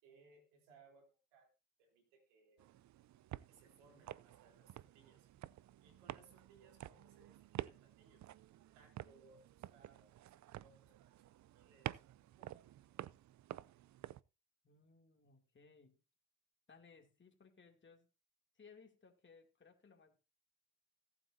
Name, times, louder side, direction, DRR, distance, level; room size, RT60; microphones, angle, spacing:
voice 1, 0.0-1.5 1.8-2.6 3.5-5.3 5.8-8.3 8.7-10.1 10.6-11.1 11.5-12.0 12.4-13.0, right 4 dB, 90° right, 3.6 m, -67 dB
sound 1, 2.6-14.2, right 13 dB, 50° right, 0.5 m, -50 dB
voice 2, 14.6-16.0 16.7-18.1 18.5-20.2, left 5 dB, 30° left, 2.6 m, -63 dB
17.5 x 8.2 x 2.7 m
supercardioid pair, 60°, 36 cm